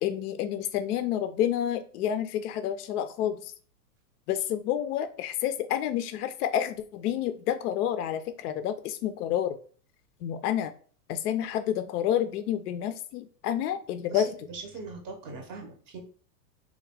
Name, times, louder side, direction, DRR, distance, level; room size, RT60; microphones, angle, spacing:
voice 1, 0.0-3.5 4.3-9.6 10.2-10.7 11.1-14.3, left 10 dB, 65° left, 10 dB, 0.5 m, -29 dB
voice 2, 14.1-16.0, right 4 dB, 25° right, 3 dB, 0.6 m, -41 dB
3.5 x 2.2 x 3.3 m, 0.43 s
supercardioid pair, 140°, 49 cm